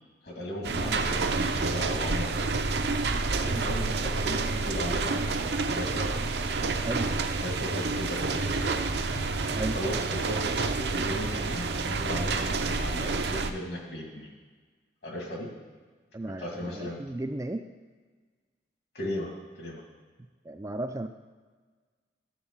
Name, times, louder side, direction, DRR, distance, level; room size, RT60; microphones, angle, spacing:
voice 1, 0.2-2.6 3.3-6.2 7.4-8.8 9.4-14.3 15.0-15.5 16.4-17.0 18.9-19.8, left 1 dB, 60° left, -1 dB, 2.1 m, -36 dB
sound 1, 0.6-13.5, right 3 dB, 65° right, 0.6 m, -29 dB
voice 2, 6.8-7.1 9.5-9.8 16.1-17.7 20.4-21.1, right 2 dB, 15° right, 7 dB, 0.3 m, -34 dB
Drum, 9.2-11.3, left 1 dB, 30° left, 0.7 m, -47 dB
12.0 x 4.4 x 7.2 m, 1.4 s
head